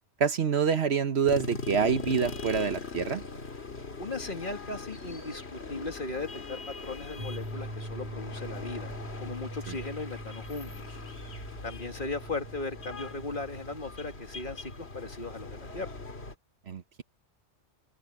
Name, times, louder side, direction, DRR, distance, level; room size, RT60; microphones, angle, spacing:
voice 1, 0.2-3.2 9.7-9.8 16.7-17.0, right 6 dB, 65° right, 1.3 m, -27 dB
sound 1, 1.2-16.3, left 3 dB, 60° left, 2.5 m, -41 dB
voice 2, 4.0-8.9 9.2-11.0 11.6-15.9, left 3 dB, 45° left, 2.1 m, -37 dB
sound 2, 7.2-13.8, right 1 dB, 20° right, 1.9 m, -42 dB
omnidirectional pair, 1.2 m